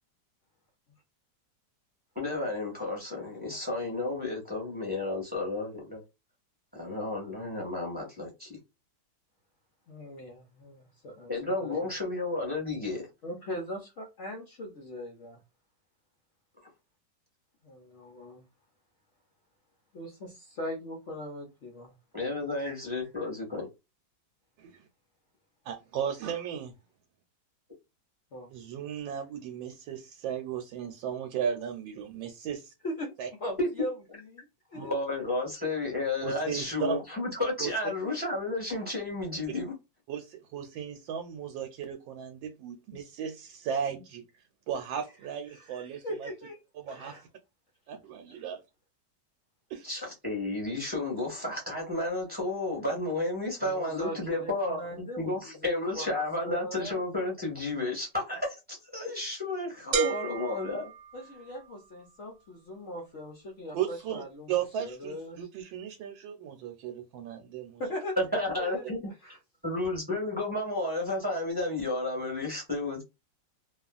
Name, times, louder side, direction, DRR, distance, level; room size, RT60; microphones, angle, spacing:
voice 1, 2.1-6.0 6.7-8.6 11.3-13.1 22.1-23.7 33.6-33.7 34.7-39.7 49.8-60.9 68.2-69.0 69.6-73.0, left 2 dB, 5° right, 1.1 m, -32 dB
voice 2, 9.9-11.9 13.2-15.4 17.6-18.4 19.9-21.9 22.6-22.8 28.3-28.5 32.8-33.9 34.3-34.4 34.7-34.9 45.5-46.6 46.9-47.2 48.3-48.4 53.6-57.0 61.1-64.5 64.8-65.5 67.8-68.2 68.6-68.9 69.2-69.4, equal, 70° left, 0.6 m, -40 dB
voice 3, 25.6-26.7 28.5-32.7 33.2-33.3 34.7-34.9 36.2-37.0 37.6-37.7 40.1-44.3 44.7-46.3 46.7-47.3 47.9-48.6 49.7-50.0 63.7-64.2 64.5-67.8, right 8 dB, 85° right, 1.3 m, -35 dB
sound 1, 59.9-61.8, right 6 dB, 70° right, 0.7 m, -32 dB
2.9 x 2.4 x 2.3 m
omnidirectional pair, 2.0 m